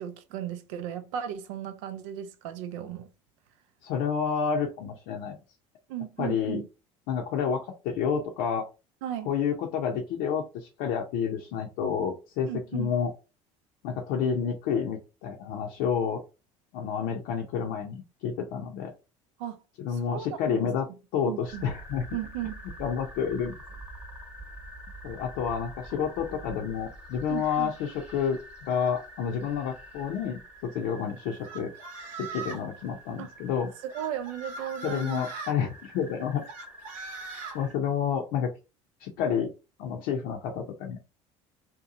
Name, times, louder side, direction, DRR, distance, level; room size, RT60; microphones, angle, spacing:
voice 1, 0.0-3.1 5.9-6.7 9.0-9.3 12.5-12.9 19.4-19.6 19.9-20.7 21.3-21.7 22.1-22.5 27.3-27.7 33.2-33.3 33.8-35.3, right 10 dB, 75° right, 0.5 m, -35 dB
voice 2, 3.8-5.4 6.2-6.6 7.1-8.7 9.3-13.1 13.8-16.2 16.7-18.9 19.8-22.0 22.8-23.5 25.0-31.7 32.2-33.7 34.8-36.4 37.5-38.5 39.0-39.5 39.8-41.0, left 7 dB, 70° left, 0.6 m, -29 dB
sound 1, 21.5-37.8, right 1 dB, 5° right, 1.0 m, -46 dB
sound 2, 31.4-32.7 33.9-35.6 36.5-37.6, right 3 dB, 60° right, 0.9 m, -40 dB
2.7 x 2.2 x 2.5 m
hypercardioid pair, 75°, 16 cm